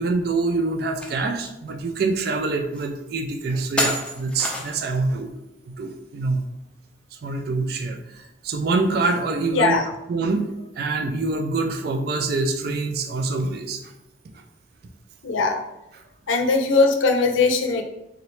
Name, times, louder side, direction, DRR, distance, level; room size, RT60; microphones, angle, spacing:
voice 1, 0.0-5.3 5.7-6.4 7.2-9.8 10.1-10.5 10.8-13.9 14.3-14.4, right 3 dB, 55° right, 4 dB, 0.4 m, -25 dB
sound 1, 1.0-1.2 1.7-1.8 2.7-2.8 3.8-4.9, left 1 dB, 5° left, 0.5 m, -27 dB
voice 2, 15.2-15.6 16.3-17.8, left 3 dB, 85° left, 5 dB, 0.5 m, -19 dB
3.8 x 3.1 x 3.0 m, 0.91 s
head